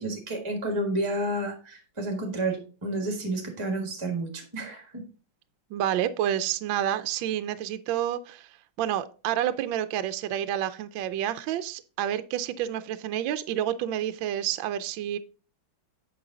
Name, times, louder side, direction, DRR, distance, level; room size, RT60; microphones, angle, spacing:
voice 1, 0.0-5.0, right 1 dB, 15° right, 3 dB, 1.2 m, -30 dB
voice 2, 5.7-8.5 8.8-15.2, right 11 dB, 75° right, 11 dB, 1.2 m, -29 dB
8.8 x 5.4 x 3.8 m, 0.36 s
omnidirectional pair, 2.3 m